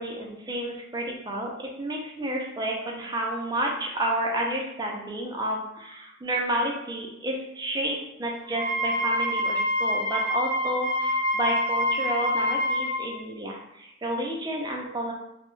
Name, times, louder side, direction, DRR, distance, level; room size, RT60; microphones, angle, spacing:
voice 1, 0.0-15.1, right 1 dB, 20° right, -1 dB, 0.4 m, -30 dB
Wind instrument woodwind instrument, 8.5-13.0, left 1 dB, 35° left, 1.2 m, -26 dB
2.1 x 2.0 x 3.0 m, 0.82 s
head